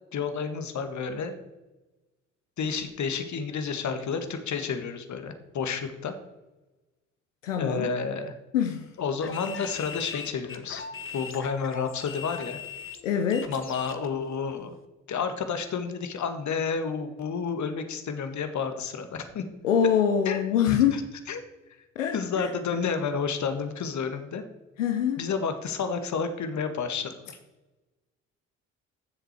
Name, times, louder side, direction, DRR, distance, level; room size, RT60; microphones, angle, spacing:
voice 1, 0.1-1.4 2.6-6.1 7.6-8.3 9.0-10.9 11.1-12.6 13.5-14.7 15.1-19.4 20.3-20.4 20.7-21.0 21.3-21.4 22.1-24.4 25.2-27.4, left 5 dB, 50° left, 8 dB, 1.7 m, -30 dB
voice 2, 7.4-7.9 8.5-8.8 13.0-13.5 19.6-21.1 22.0-22.5 24.8-25.2, left 8 dB, 85° left, 5 dB, 0.8 m, -24 dB
sound 1, 9.2-14.1, left 6 dB, 35° left, 1.3 m, -40 dB
15.0 x 6.8 x 4.6 m, 1.1 s
hypercardioid pair, 45°, 37 cm